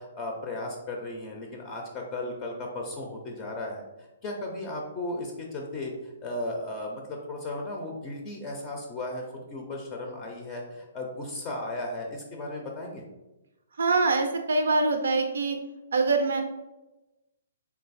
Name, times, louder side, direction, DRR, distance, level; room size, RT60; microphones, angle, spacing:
voice 1, 0.0-9.2 9.5-13.0, left 1 dB, 25° left, 1 dB, 0.5 m, -35 dB
voice 2, 13.8-15.6 15.9-16.4, right 3 dB, 75° right, 5 dB, 0.4 m, -24 dB
3.2 x 2.0 x 4.0 m, 1.0 s
hypercardioid pair, 145°, 0 cm